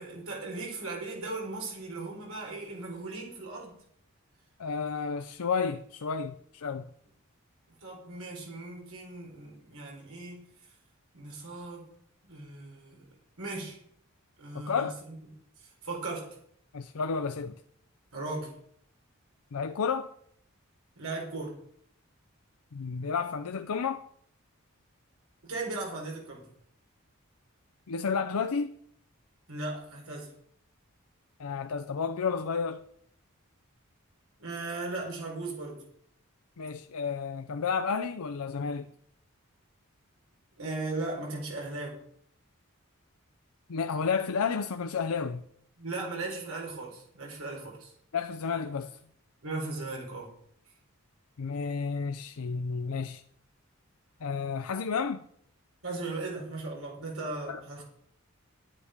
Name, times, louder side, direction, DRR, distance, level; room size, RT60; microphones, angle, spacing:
voice 1, 0.0-3.7 7.8-10.4 11.1-11.9 12.2-13.0 13.4-13.8 14.4-14.9 15.6-16.4 18.1-18.5 21.0-21.6 25.4-26.5 29.5-30.3 34.4-35.8 40.6-42.0 45.8-47.9 49.4-50.3 55.8-57.8, right 2 dB, 80° right, 4.3 m, -37 dB
voice 2, 4.6-6.9 14.5-15.0 16.7-17.6 19.5-20.1 22.7-24.1 27.9-28.7 31.4-32.8 36.6-38.9 43.7-45.4 48.1-49.0 51.4-53.2 54.2-55.3 57.5-57.6, left 5 dB, 85° left, 0.6 m, -31 dB
12.0 x 9.9 x 5.1 m
head